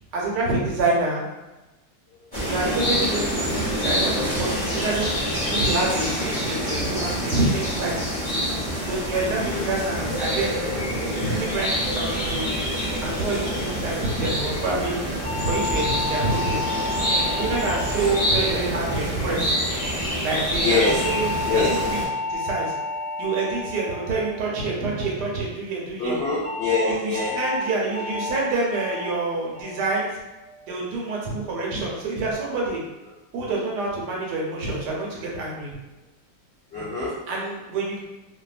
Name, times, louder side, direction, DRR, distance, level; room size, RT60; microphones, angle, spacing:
voice 1, 0.1-1.2 2.5-5.1 5.5-8.0 8.8-10.6 10.9-12.5 13.0-15.0 15.4-16.6 17.4-19.5 20.2-21.6 22.3-22.7 23.2-26.2 26.9-30.1 30.7-32.8 33.3-35.7 37.3-38.0, right 3 dB, 75° right, -3 dB, 1.2 m, -27 dB
sound 1, 2.3-22.0, equal, 10° left, 0.7 m, -26 dB
sound 2, 15.2-19.7 20.8-25.3 26.4-26.7 27.1-27.5 27.9-28.3 28.7-29.1 29.5-29.9 30.3-30.7, left 3 dB, 45° right, 0.9 m, -31 dB
voice 2, 20.6-21.1 21.4-21.9 26.0-27.4 36.7-37.2, left 3 dB, 60° left, -11 dB, 0.6 m, -25 dB
2.7 x 2.3 x 2.3 m, 1.0 s
omnidirectional pair, 1.9 m